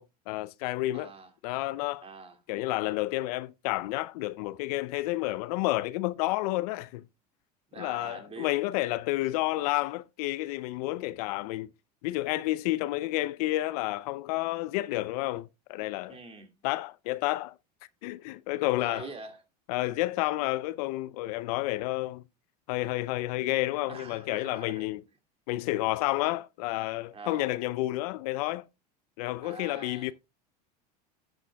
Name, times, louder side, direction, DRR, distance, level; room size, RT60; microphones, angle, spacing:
voice 1, 0.0-1.1 1.4-2.0 2.5-7.0 7.8-11.7 12.0-16.2 16.6-17.5 18.0-19.1 19.7-22.2 22.7-25.0 25.5-28.7 29.2-30.1, left 18 dB, 70° left, 0.6 m, -30 dB
voice 2, 0.9-1.3 2.0-2.4 7.7-8.5 16.1-16.6 18.8-19.4 23.9-24.9 27.1-27.5 29.4-30.1, right 4 dB, 30° right, 2.3 m, -44 dB
12.5 x 8.5 x 2.3 m
hypercardioid pair, 90°, 21 cm